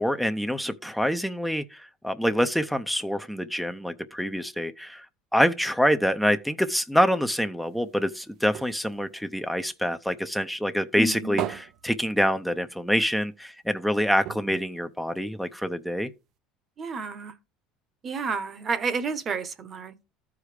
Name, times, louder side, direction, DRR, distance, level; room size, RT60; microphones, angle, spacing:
voice 1, 0.0-5.1 5.3-16.1, equal, ahead, 0.6 m, -26 dB
sound 1, 7.6-10.3 10.6-12.9 13.2-13.3 13.6-13.8 14.2-15.7 16.4-16.5, right 11 dB, 60° right, 0.6 m, -38 dB
voice 2, 11.0-11.6 16.8-17.3 18.0-20.0, right 4 dB, 35° right, 1.0 m, -30 dB
14.0 x 4.9 x 3.3 m
supercardioid pair, 100°, 0 cm